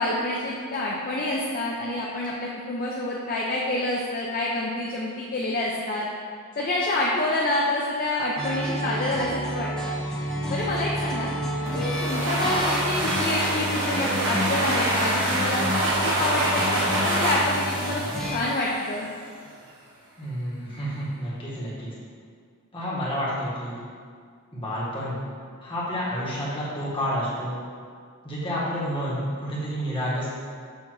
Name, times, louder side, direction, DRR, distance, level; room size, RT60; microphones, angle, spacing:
voice 1, 0.0-6.1 6.6-9.9 10.5-11.3 11.7-15.7 16.0-18.0 18.3-19.1, left 1 dB, 40° left, -4 dB, 0.6 m, -27 dB
sound 1, 8.4-18.4, equal, 5° left, 0.9 m, -30 dB
sound 2, 11.7-19.1, right 1 dB, 60° right, 1.2 m, -26 dB
voice 2, 20.2-21.9 22.7-23.8 24.5-25.2 25.6-27.6 28.2-30.3, equal, 25° left, -8 dB, 1.7 m, -29 dB
7.1 x 3.0 x 6.0 m, 2.1 s
head